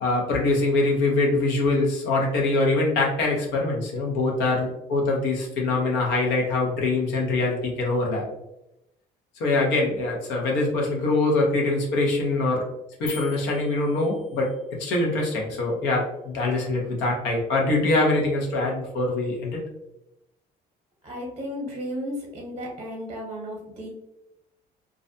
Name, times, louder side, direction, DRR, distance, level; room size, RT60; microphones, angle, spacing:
voice 1, 0.0-8.2 9.4-12.6 13.0-14.5 14.8-19.6, left 2 dB, 90° left, -1 dB, 0.8 m, -23 dB
sound 1, 13.1-14.6, left 5 dB, 60° left, 0.9 m, -42 dB
voice 2, 21.0-23.9, equal, 35° right, -1 dB, 0.7 m, -34 dB
2.4 x 2.1 x 2.6 m, 0.86 s
cardioid pair, 110°, 17 cm